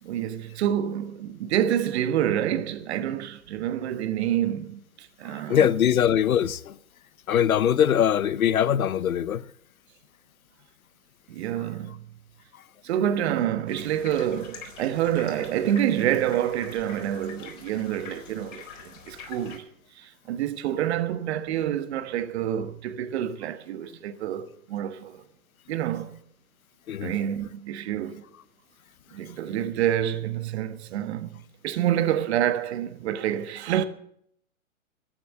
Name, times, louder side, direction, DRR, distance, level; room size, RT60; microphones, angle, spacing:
voice 1, 0.0-5.7 11.3-12.1 12.8-19.6 20.0-25.2 25.7-26.2 27.0-28.2 29.1-33.9, right 11 dB, 50° right, 1.4 m, -27 dB
voice 2, 5.3-6.8 7.3-9.4 26.9-27.1, left 9 dB, 80° left, 0.8 m, -22 dB
sound 1, 13.7-19.6, left 6 dB, 60° left, 4.2 m, -45 dB
15.0 x 8.9 x 8.0 m
hypercardioid pair, 125°, 42 cm